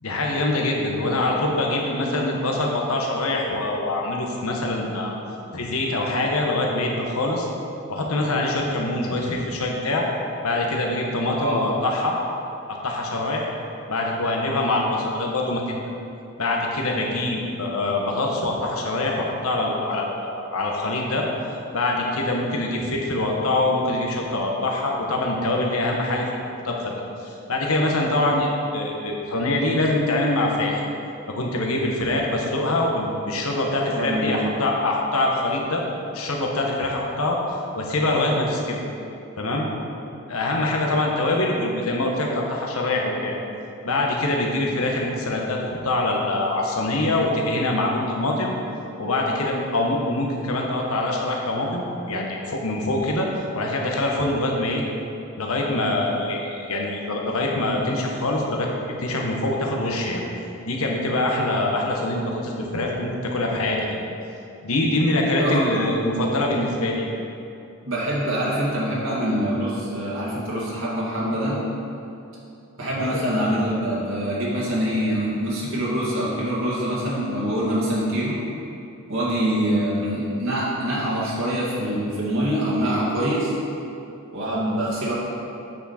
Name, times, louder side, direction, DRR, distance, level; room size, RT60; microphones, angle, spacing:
voice 1, 0.0-5.1 5.5-7.5 7.9-10.0 10.4-12.2 12.7-13.4 13.9-15.6 16.4-21.3 21.7-26.3 26.6-26.9 27.2-30.8 31.3-35.8 36.1-37.4 37.7-38.8 39.4-39.7 40.3-43.4 43.8-48.5 49.0-53.3 53.5-54.8 55.4-58.7 59.0-60.2 60.6-64.0 64.6-67.1 73.0-73.2, left 2 dB, 85° left, -1 dB, 1.2 m, -24 dB
voice 2, 33.9-34.4 65.4-65.9 67.8-71.6 72.8-78.4 79.1-83.5 84.3-85.1, equal, 70° right, -7 dB, 1.9 m, -24 dB
8.6 x 6.1 x 4.3 m, 2.7 s
head